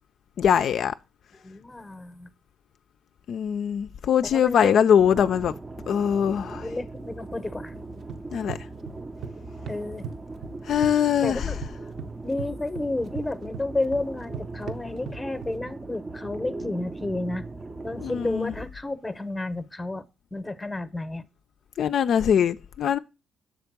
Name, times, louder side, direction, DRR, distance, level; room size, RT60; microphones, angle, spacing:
voice 1, 0.4-0.9 3.3-5.5 5.9-6.7 8.3-8.6 10.6-11.5 18.0-18.5 21.8-23.0, left 8 dB, 65° left, 0.3 m, -22 dB
voice 2, 1.3-2.3 4.3-4.8 6.6-7.7 9.7-10.1 11.2-11.6 12.2-17.5 17.8-20.0 20.3-21.3, left 2 dB, 10° left, 0.7 m, -31 dB
sound 1, 5.0-18.7, right 3 dB, 25° right, 0.5 m, -39 dB
sound 2, 7.7-9.3 9.7-10.9 11.2-15.5, right 6 dB, 60° right, 0.7 m, -38 dB
7.3 x 3.5 x 5.8 m
cardioid pair, 90°, 0 cm